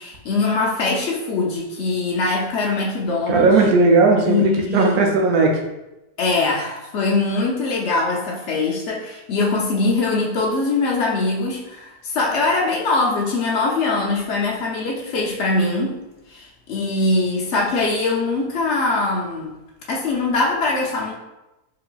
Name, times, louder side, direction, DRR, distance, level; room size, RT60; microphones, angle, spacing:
voice 1, 0.0-3.5 4.2-5.0 6.2-16.0 16.3-19.6 19.9-21.1, left 3 dB, 85° left, -2 dB, 0.6 m, -22 dB
voice 2, 3.3-5.6, right 3 dB, 70° right, 1 dB, 1.0 m, -16 dB
4.8 x 2.6 x 2.3 m, 0.97 s
omnidirectional pair, 1.9 m